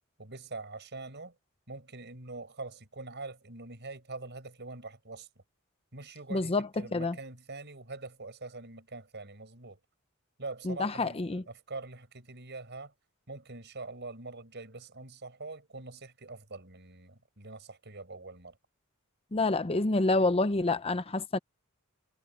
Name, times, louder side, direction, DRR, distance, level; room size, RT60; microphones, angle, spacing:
voice 1, 0.2-1.3 1.7-5.3 5.9-9.8 10.4-12.9 13.3-18.6, right 3 dB, 55° right, 6.2 m, -44 dB
voice 2, 6.3-7.2 10.6-11.4 19.3-21.4, left 2 dB, 25° left, 0.6 m, -28 dB
head